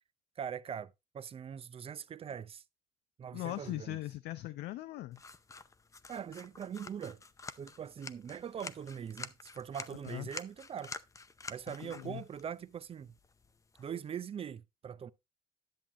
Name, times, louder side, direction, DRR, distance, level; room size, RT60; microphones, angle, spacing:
voice 1, 0.4-2.6 3.2-4.0 6.1-7.2 7.6-10.9 11.5-13.1 13.8-15.1, right 8 dB, 35° right, 0.5 m, -42 dB
voice 2, 3.3-5.2 10.1-10.3 11.8-12.2, left 16 dB, 80° left, 0.6 m, -40 dB
sound 1, 5.1-14.2, left 4 dB, 20° left, 0.6 m, -49 dB
10.5 x 7.3 x 2.9 m
cardioid pair, 110°, 17 cm